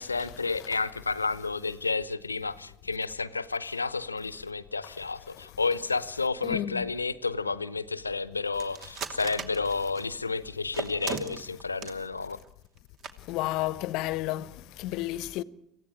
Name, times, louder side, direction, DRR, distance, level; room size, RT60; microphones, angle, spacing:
voice 1, 0.0-12.4, left 4 dB, 90° left, 0.9 m, -31 dB
voice 2, 6.4-6.8 13.3-14.5 14.8-15.4, left 15 dB, 55° left, 0.9 m, -31 dB
sound 1, 8.6-10.1 10.7-12.0 12.3-12.5 12.8-12.9 13.0-13.1 13.5-13.7, right 6 dB, 45° right, 2.7 m, -37 dB
27.5 x 16.0 x 9.9 m
figure-of-eight pair, 70°, 0 cm